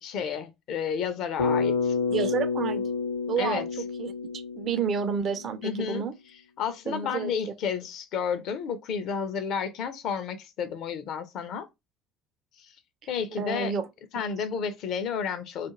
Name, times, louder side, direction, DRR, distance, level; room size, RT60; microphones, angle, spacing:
voice 1, 0.0-1.9 3.4-3.6 5.6-6.0 6.6-11.7 13.1-13.7 14.1-15.7, left 7 dB, 55° left, 0.5 m, -31 dB
Bass guitar, 1.4-5.5, left 5 dB, 80° left, 0.8 m, -29 dB
voice 2, 2.1-2.8 3.3-6.1 6.9-7.3 13.4-13.9, right 6 dB, 45° right, 0.4 m, -30 dB
2.4 x 2.2 x 3.0 m
figure-of-eight pair, 60°, 0 cm